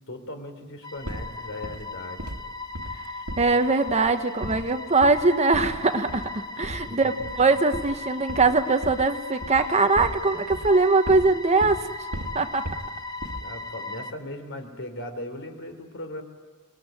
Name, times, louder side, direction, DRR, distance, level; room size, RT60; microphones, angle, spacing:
voice 1, 0.0-2.3 6.7-7.3 13.4-16.2, left 1 dB, 60° left, 6 dB, 3.8 m, -38 dB
sound 1, 0.8-14.1, left 2 dB, 20° left, 1.0 m, -38 dB
sound 2, 1.0-1.3 1.6-1.9 2.2-2.5 2.7-3.6 3.9-4.2 4.4-4.7 5.0-5.3 5.5-5.8 6.1-6.4 6.6-6.9 7.2-7.4 7.7-9.2 9.4-10.2 10.5-11.3 11.6-11.8 12.1-12.9 13.2-13.6, right 1 dB, 80° right, 2.0 m, -36 dB
voice 2, 3.4-11.9 12.3-12.6, right 3 dB, 30° right, 8 dB, 1.2 m, -22 dB
27.5 x 20.5 x 9.3 m, 1.5 s
head